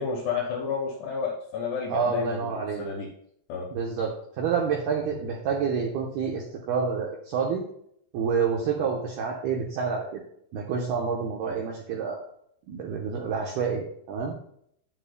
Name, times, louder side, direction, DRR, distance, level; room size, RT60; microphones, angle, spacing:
voice 1, 0.0-3.1 3.5-3.7 5.1-5.2 11.5-11.6, left 5 dB, 70° left, 0 dB, 2.7 m, -31 dB
voice 2, 1.9-2.8 3.7-7.6 8.1-10.2 10.5-12.2 12.7-14.3, right 6 dB, 85° right, -1 dB, 2.2 m, -28 dB
9.6 x 8.8 x 2.2 m, 0.69 s
omnidirectional pair, 5.9 m